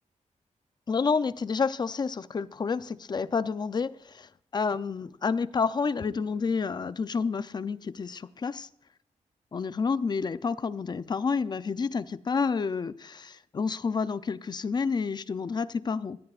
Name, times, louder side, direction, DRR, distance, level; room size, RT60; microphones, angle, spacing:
voice 1, 0.9-8.7 9.5-16.2, left 5 dB, 35° left, 0.5 m, -29 dB
22.0 x 17.0 x 2.5 m
wide cardioid pair, 155°, 12 cm